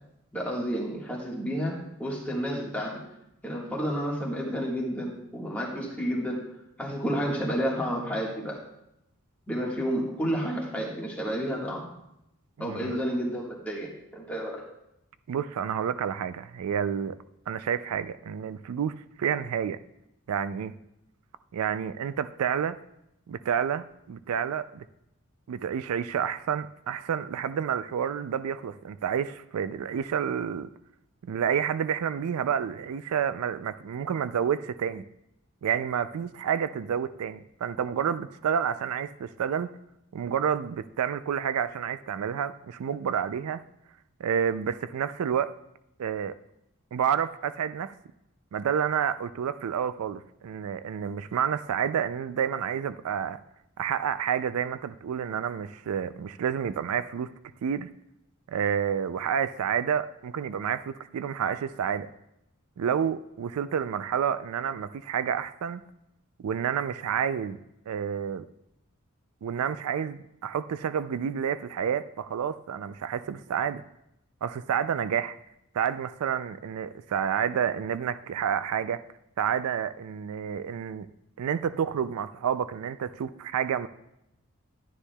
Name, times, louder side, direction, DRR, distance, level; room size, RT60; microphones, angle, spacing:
voice 1, 0.3-3.0 3.4-6.4 6.8-8.6 9.5-11.9 12.6-14.6, equal, 5° left, -3 dB, 1.5 m, -30 dB
voice 2, 12.6-12.9 15.3-17.2 17.5-19.8 20.3-20.7 21.5-22.7 23.3-24.8 25.5-30.7 31.2-35.0 35.6-39.7 40.1-43.6 44.2-45.5 46.0-46.3 46.9-47.9 48.5-53.4 53.8-57.3 57.6-57.9 58.5-62.1 62.8-65.8 66.4-67.6 67.9-68.4 69.4-73.8 74.4-75.4 75.7-79.0 79.4-81.1 81.4-83.9, right 8 dB, 90° right, 13 dB, 0.4 m, -29 dB
11.5 x 9.8 x 2.3 m, 0.84 s
head